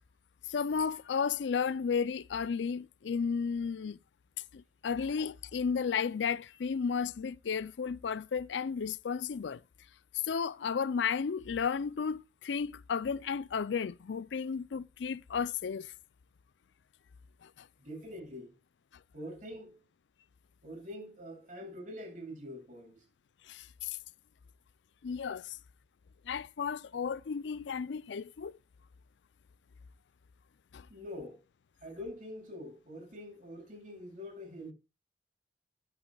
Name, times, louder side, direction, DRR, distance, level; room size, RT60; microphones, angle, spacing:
voice 1, 0.5-4.0 4.5-9.6 10.2-15.9 17.4-17.7 23.5-24.0 25.0-25.6 26.3-28.6 30.7-30.9, left 6 dB, 75° left, 0.4 m, -33 dB
voice 2, 17.8-18.5 19.1-19.8 20.6-23.0 30.9-31.4 31.8-34.7, left 1 dB, 45° right, 7.6 m, -45 dB
12.5 x 11.0 x 2.3 m
head